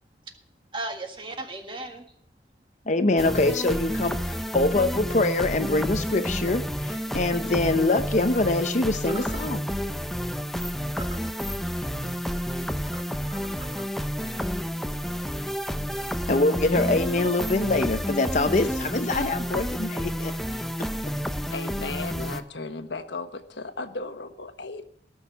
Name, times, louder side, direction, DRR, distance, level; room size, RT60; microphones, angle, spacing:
voice 1, 0.7-2.1 9.1-9.2 11.1-11.2 12.9-13.0 13.3-13.9, right 2 dB, 30° right, 5 dB, 1.7 m, -37 dB
voice 2, 2.9-9.6 16.3-20.3, left 2 dB, 45° left, 9 dB, 0.7 m, -24 dB
sound 1, 3.2-22.4, equal, ahead, 0.6 m, -30 dB
voice 3, 21.5-24.8, left 3 dB, 85° left, 8 dB, 1.3 m, -35 dB
18.0 x 6.4 x 7.1 m, 0.66 s
head